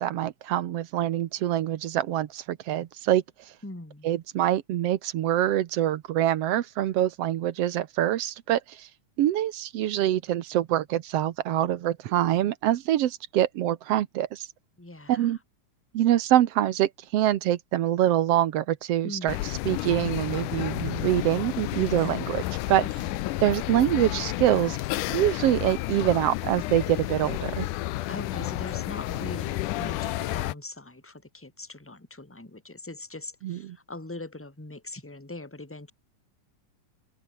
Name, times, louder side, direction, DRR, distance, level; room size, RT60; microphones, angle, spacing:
voice 1, 0.0-3.2 4.0-8.9 9.2-14.5 15.1-15.4 15.9-19.3 19.6-22.4 22.7-22.8 23.4-24.8 25.1-27.7 33.4-33.8, right 12 dB, 65° right, 1.7 m, -25 dB
voice 2, 3.6-4.1 14.8-15.3 19.0-19.3 22.8-23.3 28.1-35.9, left 2 dB, 5° left, 2.2 m, -41 dB
sound 1, 19.3-30.5, left 16 dB, 85° left, 2.4 m, -31 dB
open air
omnidirectional pair, 3.6 m